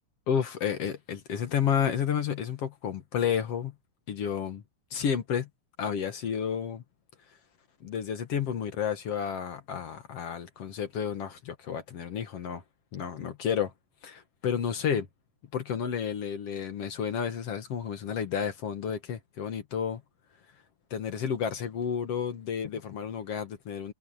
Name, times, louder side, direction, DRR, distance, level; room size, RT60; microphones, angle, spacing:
voice 1, 0.3-3.7 4.1-4.6 4.9-5.5 5.8-6.8 7.8-12.6 12.9-13.7 14.0-15.1 15.5-20.0 20.9-23.9, left 8 dB, 60° left, 2.4 m, -31 dB
omnidirectional pair, 3.3 m